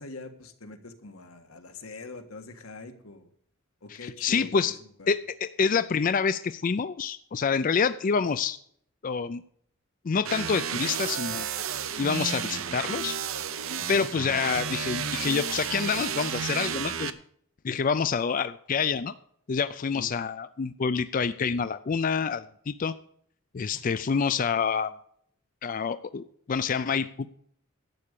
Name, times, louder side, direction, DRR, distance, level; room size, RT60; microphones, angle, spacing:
voice 1, 0.0-3.3 3.8-4.7 5.0-5.1 13.8-14.1 19.9-20.1 23.7-23.8, left 3 dB, 90° left, 6 dB, 1.6 m, -44 dB
voice 2, 3.9-4.8 5.1-8.6 9.0-9.4 10.0-11.5 12.0-13.2 13.9-17.1 17.6-19.1 19.5-22.9 23.5-24.9 25.6-27.3, left 6 dB, 40° left, 13 dB, 0.4 m, -27 dB
sound 1, 10.2-17.1, right 7 dB, 75° right, 0.8 m, -32 dB
12.0 x 8.5 x 6.7 m, 0.65 s
head